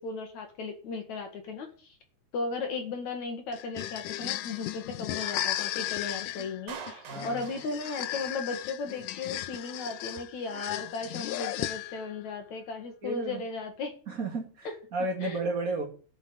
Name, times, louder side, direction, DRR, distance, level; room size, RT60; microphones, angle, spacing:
voice 1, 0.0-2.0 2.3-13.9 14.6-14.7 15.2-15.4, left 4 dB, 55° left, 5 dB, 2.5 m, -36 dB
sound 1, 3.5-12.2, left 14 dB, 80° left, 1.9 m, -35 dB
Clapping, 6.7-8.7, right 6 dB, 85° right, 4.2 m, -45 dB
voice 2, 7.1-7.4 13.0-13.4 14.1-15.8, right 2 dB, 25° right, -4 dB, 2.3 m, -32 dB
12.0 x 5.6 x 9.0 m, 0.39 s
omnidirectional pair, 4.5 m